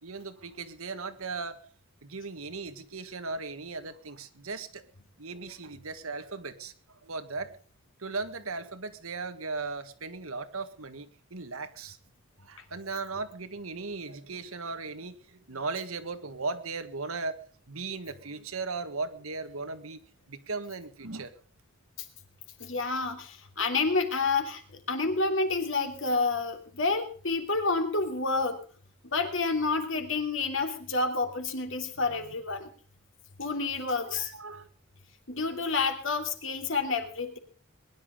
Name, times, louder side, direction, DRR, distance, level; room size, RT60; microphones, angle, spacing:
voice 1, 0.0-1.6 2.0-4.8 5.2-6.7 7.0-7.5 8.0-12.0 12.4-17.4 17.7-20.0 20.3-21.3 34.0-34.7, right 3 dB, 90° right, 9 dB, 1.8 m, -37 dB
voice 2, 22.6-24.6 24.9-28.6 29.1-32.7 33.4-34.3 35.3-37.4, left 3 dB, 65° left, 6 dB, 2.9 m, -29 dB
21.0 x 11.0 x 5.2 m, 0.42 s
head